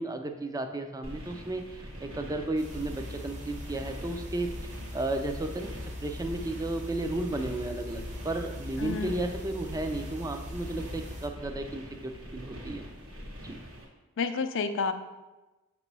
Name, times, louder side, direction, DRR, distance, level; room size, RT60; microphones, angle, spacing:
voice 1, 0.0-4.5 4.9-5.7 6.0-12.8 13.4-13.6, right 2 dB, 15° right, 6 dB, 0.4 m, -33 dB
sound 1, 1.0-13.8, equal, 65° right, 1.5 m, -44 dB
sound 2, 2.6-11.3, left 1 dB, 35° right, 0.8 m, -41 dB
voice 2, 8.8-9.3 14.2-14.9, left 4 dB, 60° left, 9 dB, 0.5 m, -30 dB
6.7 x 3.0 x 5.4 m, 1.1 s
head